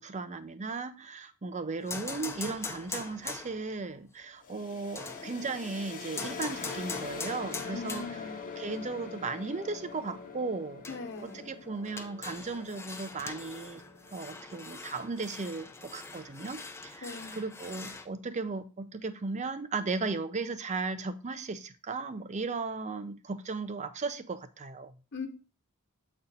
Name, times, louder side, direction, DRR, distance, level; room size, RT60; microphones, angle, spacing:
voice 1, 0.0-8.0 8.6-10.8 11.2-13.8 14.1-24.9, right 3 dB, 35° right, 0.6 m, -36 dB
sound 1, 1.8-3.8 5.0-5.6 6.1-8.4 8.8-8.9 10.2-10.3 10.8-18.1, left 3 dB, 10° left, 0.6 m, -42 dB
sound 2, 4.4-16.1, left 5 dB, 40° left, 1.0 m, -44 dB
voice 2, 7.7-8.4 10.9-11.5 17.0-17.4 25.1-25.3, left 4 dB, 55° left, 1.3 m, -40 dB
7.8 x 4.2 x 4.2 m
head